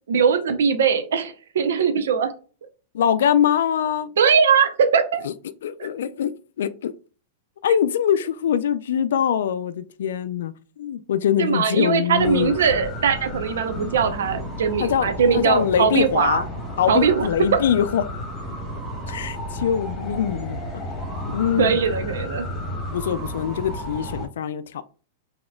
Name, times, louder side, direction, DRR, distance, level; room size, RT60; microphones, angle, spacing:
voice 1, 0.1-2.3 4.2-5.2 11.4-16.4 16.9-17.6 21.6-22.5, right 6 dB, 85° right, 0.6 m, -20 dB
voice 2, 2.9-4.1 5.2-5.3 5.6-6.9 7.6-12.5 14.8-16.5 16.8-18.0 19.1-20.6 21.3-21.8 22.9-24.8, left 9 dB, 80° left, 0.3 m, -23 dB
sound 1, 12.2-24.3, left 1 dB, 30° left, 1.5 m, -32 dB
4.0 x 2.8 x 2.2 m
hypercardioid pair, 125°, 0 cm